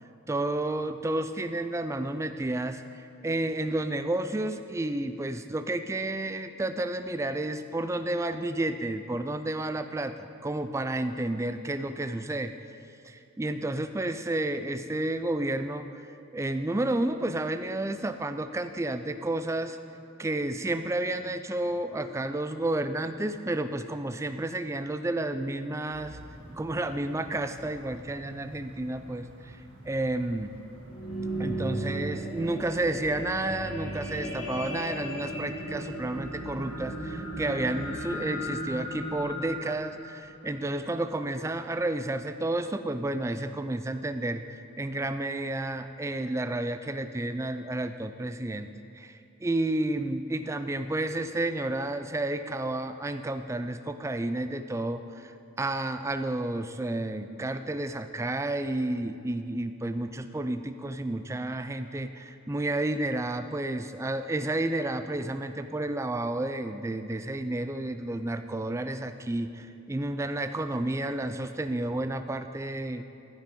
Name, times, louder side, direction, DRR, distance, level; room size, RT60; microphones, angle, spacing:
voice 1, 0.3-12.5 13.0-15.9 16.3-19.8 20.2-26.2 26.5-29.6 29.9-30.6 31.4-48.7 48.9-73.0, right 2 dB, 15° right, 9 dB, 0.3 m, -31 dB
sound 1, 25.9-37.9, equal, 70° right, 1.6 m, -49 dB
sound 2, 30.7-41.2 41.8-41.9, right 1 dB, 85° left, 2.3 m, -36 dB
14.0 x 6.1 x 5.3 m, 2.6 s
head